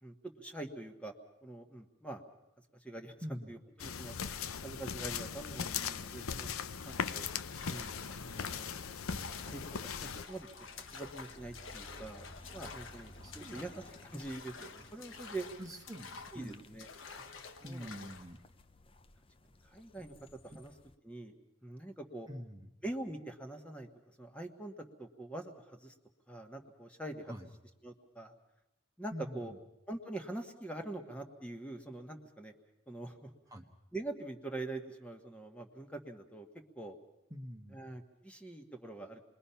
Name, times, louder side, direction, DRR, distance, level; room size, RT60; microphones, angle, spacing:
voice 1, 0.0-1.1 1.4-2.2 2.8-4.1 4.5-6.5 6.8-7.3 7.6-7.9 8.2-8.7 9.5-9.6 10.0-10.5 10.9-12.2 12.5-13.1 13.5-15.5 16.3-16.9 17.2-17.9 19.6-20.1 20.4-20.7 21.0-21.3 21.6-22.3 22.8-23.9 24.2-25.9 26.3-27.3 27.8-28.3 29.0-29.5 29.9-32.5 32.9-33.3 33.9-36.5 36.7-37.0 37.7-39.2, right 2 dB, 5° left, 3 dB, 1.4 m, -44 dB
voice 2, 3.2-3.5 9.1-9.4 13.2-13.6 15.6-16.6 17.6-18.4 22.3-22.7 27.3-27.5 29.1-29.6 33.5-33.6 37.3-37.8, equal, 15° right, 2 dB, 1.3 m, -45 dB
sound 1, 3.8-10.2, left 7 dB, 85° left, 0.8 m, -39 dB
sound 2, 3.9-20.9, left 1 dB, 25° left, 0.8 m, -58 dB
sound 3, 6.8-18.3, left 5 dB, 70° left, 1.5 m, -50 dB
28.5 x 21.5 x 5.7 m, 0.90 s
head